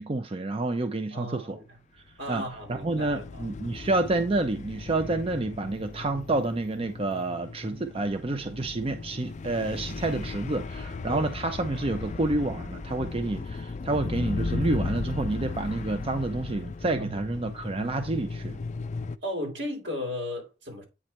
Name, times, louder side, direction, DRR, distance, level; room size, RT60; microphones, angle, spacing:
voice 1, 0.0-1.6 2.3-2.4 2.7-18.6, right 2 dB, 30° right, 0.6 m, -29 dB
voice 2, 1.1-1.6 2.2-3.5 11.1-11.3 17.0-17.2 19.2-20.8, left 1 dB, 80° right, 3.9 m, -35 dB
sound 1, 2.3-19.2, left 3 dB, 40° left, 0.4 m, -36 dB
8.9 x 3.2 x 4.3 m
head